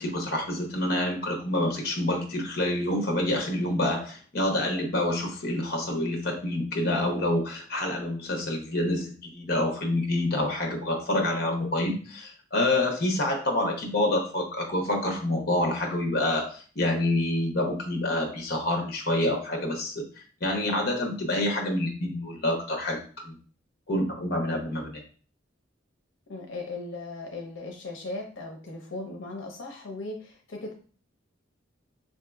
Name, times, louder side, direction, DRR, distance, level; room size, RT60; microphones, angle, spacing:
voice 1, 0.0-20.0 20.4-23.3 23.9-25.0, left 1 dB, 55° left, 2 dB, 0.9 m, -27 dB
voice 2, 26.3-30.7, left 2 dB, 80° left, 1 dB, 0.7 m, -37 dB
4.9 x 2.8 x 2.3 m, 0.41 s
head